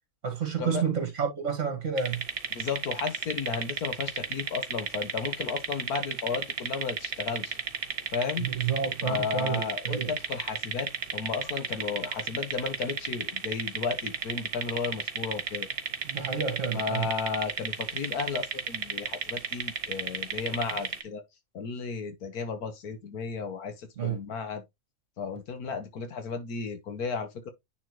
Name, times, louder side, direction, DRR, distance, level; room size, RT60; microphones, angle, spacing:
voice 1, 0.2-2.2 8.4-10.1 16.0-17.1 24.0-24.2, right 7 dB, 55° right, 2.4 m, -30 dB
sound 1, 2.0-21.0, right 6 dB, 75° right, 1.5 m, -33 dB
voice 2, 2.5-7.6 8.1-8.5 9.0-15.7 16.7-21.2 21.5-24.6 25.2-27.5, left 5 dB, 90° left, 1.7 m, -34 dB
9.9 x 3.8 x 3.1 m
omnidirectional pair, 1.6 m